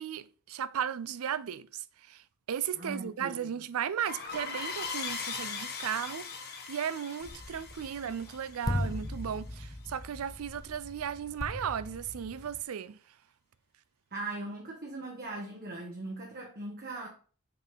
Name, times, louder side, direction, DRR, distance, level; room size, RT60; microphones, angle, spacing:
voice 1, 0.0-13.0, right 8 dB, 75° right, 0.4 m, -36 dB
voice 2, 2.8-3.6 14.1-17.1, right 2 dB, 45° right, 1.2 m, -40 dB
sound 1, 4.0-9.4, left 5 dB, 50° left, 1.1 m, -40 dB
sound 2, 7.2-12.6, left 1 dB, 15° left, 0.4 m, -39 dB
5.8 x 3.7 x 5.5 m
head